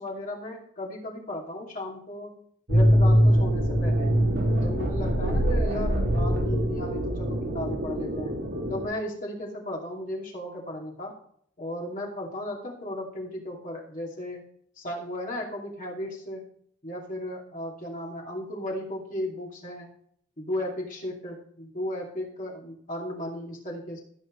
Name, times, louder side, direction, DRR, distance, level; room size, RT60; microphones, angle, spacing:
voice 1, 0.0-2.3 2.7-4.1 4.5-8.3 8.7-11.1 11.6-14.4 14.8-16.4 16.8-19.9 20.4-24.0, left 1 dB, 45° left, -2 dB, 2.6 m, -35 dB
sound 1, 2.7-8.8, equal, 85° right, 3.4 m, -23 dB
15.5 x 7.4 x 3.2 m, 0.64 s
head